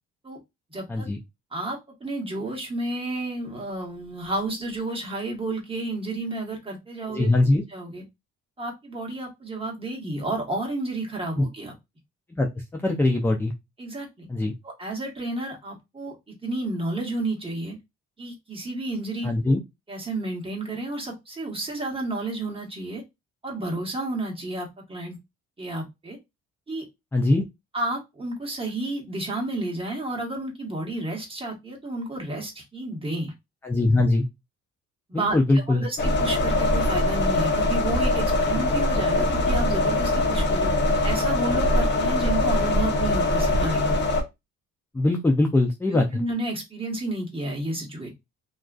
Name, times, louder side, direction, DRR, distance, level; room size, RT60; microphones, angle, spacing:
voice 1, 0.7-1.1 1.5-7.3 7.7-8.0 8.6-11.7 13.8-14.3 14.6-17.8 18.2-19.6 19.9-23.0 23.4-25.2 25.6-26.2 26.7-26.8 27.7-33.3 35.1-40.8 41.0-44.0 45.9-48.1, right 2 dB, 20° right, -1 dB, 1.1 m, -31 dB
voice 2, 7.1-7.6 11.4-11.5 12.3-12.5 12.7-13.5 14.3-14.5 19.2-19.6 27.1-27.4 33.6-34.3 35.1-35.8 44.9-46.1, left 2 dB, 10° left, 2 dB, 0.3 m, -21 dB
sound 1, 36.0-44.2, left 2 dB, 35° left, 0.7 m, -22 dB
2.4 x 2.3 x 2.2 m, 0.21 s
cardioid pair, 90°, 30 cm